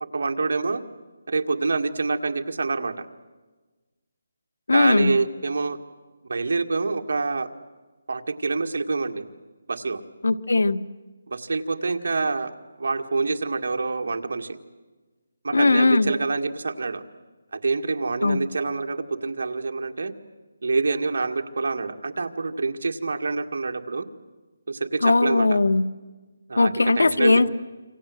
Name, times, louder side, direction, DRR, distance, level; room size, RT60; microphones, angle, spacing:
voice 1, 0.1-0.8 1.3-3.1 4.7-5.8 6.3-7.5 8.1-9.2 9.7-10.0 11.3-12.5 12.8-14.6 15.4-17.0 17.5-20.1 20.6-24.1 24.7-25.6 26.5-27.4, right 3 dB, 60° right, 5 dB, 2.0 m, -26 dB
voice 2, 4.7-5.1 10.2-10.8 15.5-16.1 18.2-18.4 25.0-25.8 26.6-27.5, left 3 dB, 90° left, 14 dB, 1.2 m, -19 dB
27.0 x 25.5 x 7.9 m, 1.2 s
hypercardioid pair, 175°, 0 cm